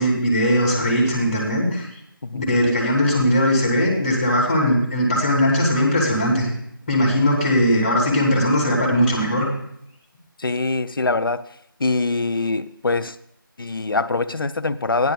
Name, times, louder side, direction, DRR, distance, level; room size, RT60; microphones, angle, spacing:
voice 1, 0.0-1.9 2.3-6.5 6.9-9.5, equal, 20° left, -2 dB, 2.7 m, -19 dB
voice 2, 10.4-11.4 11.8-13.2 13.6-15.1, left 3 dB, 75° left, 11 dB, 0.6 m, -23 dB
14.5 x 10.5 x 2.4 m, 0.73 s
figure-of-eight pair, 170°, 12 cm